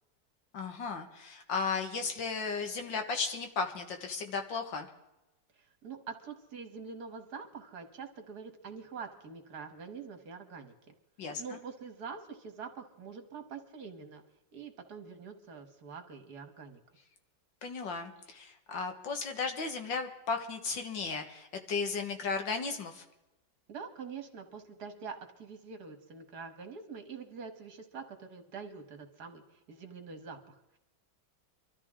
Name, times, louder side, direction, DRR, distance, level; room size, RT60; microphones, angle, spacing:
voice 1, 0.5-4.9 11.2-11.4 17.6-23.0, left 4 dB, 90° left, 5 dB, 2.3 m, -35 dB
voice 2, 5.5-10.9 11.4-14.2 14.5-16.8 23.7-30.8, right 5 dB, 60° right, 6 dB, 2.0 m, -45 dB
24.0 x 13.5 x 3.7 m, 0.95 s
omnidirectional pair, 2.0 m